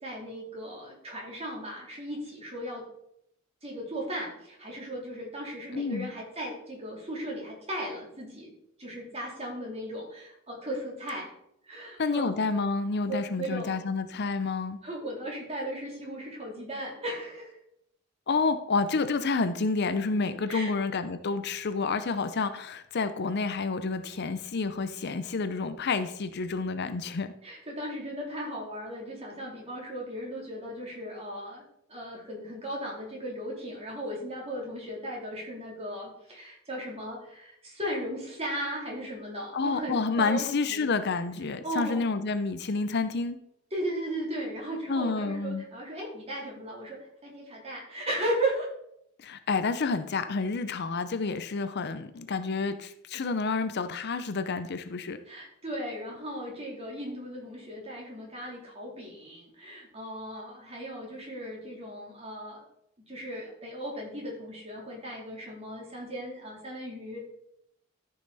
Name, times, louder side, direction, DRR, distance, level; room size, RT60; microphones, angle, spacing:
voice 1, 0.0-2.8 3.6-8.5 8.8-11.3 11.6-12.4 13.1-13.8 14.8-17.5 20.5-20.7 27.4-31.6 31.9-40.9 41.6-42.0 43.7-48.7 55.3-62.7 63.1-67.2, right 1 dB, 30° right, -2 dB, 3.1 m, -36 dB
voice 2, 5.8-6.1 12.0-14.8 18.3-27.3 39.5-43.4 44.9-45.6 49.2-55.2, left 4 dB, 55° left, 10 dB, 0.6 m, -29 dB
13.5 x 5.7 x 4.1 m, 0.76 s
head